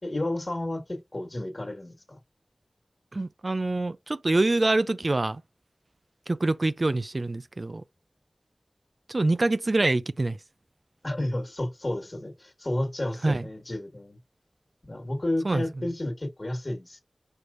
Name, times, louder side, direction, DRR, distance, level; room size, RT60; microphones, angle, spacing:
voice 1, 0.0-2.2 11.0-14.2 14.8-17.0, left 1 dB, 40° left, 1.7 m, -31 dB
voice 2, 3.1-5.4 6.3-7.8 9.1-10.4 13.2-13.5 15.4-15.6, right 2 dB, 50° right, 0.3 m, -25 dB
4.8 x 4.4 x 2.5 m
wide cardioid pair, 50°, 0 cm